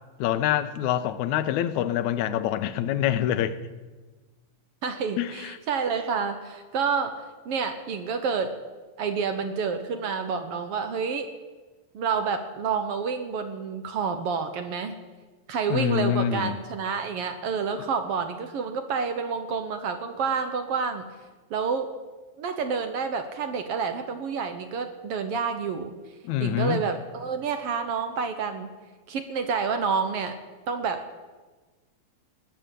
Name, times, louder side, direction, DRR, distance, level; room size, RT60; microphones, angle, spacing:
voice 1, 0.2-3.6 5.2-5.6 15.7-16.6 26.2-26.8, left 11 dB, 85° left, 11 dB, 2.1 m, -25 dB
voice 2, 4.8-8.5 9.0-11.3 11.9-15.0 15.5-21.1 21.5-21.9 22.4-25.9 26.4-28.7 29.1-30.4 30.7-31.1, right 5 dB, 65° right, 8 dB, 1.6 m, -29 dB
19.5 x 6.8 x 9.0 m, 1.3 s
omnidirectional pair, 3.4 m